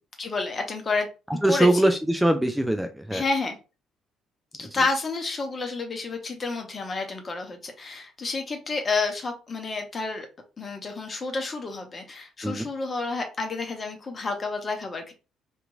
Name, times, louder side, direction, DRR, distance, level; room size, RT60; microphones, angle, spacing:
voice 1, 0.2-1.1 1.5-1.9 3.1-3.6 4.6-10.3 10.6-15.1, left 3 dB, 40° left, 5 dB, 0.9 m, -30 dB
voice 2, 1.4-3.2 4.7-4.8 12.4-12.7, right 1 dB, 5° right, 7 dB, 0.4 m, -22 dB
2.9 x 2.5 x 2.4 m, 0.31 s
hypercardioid pair, 50°, 0 cm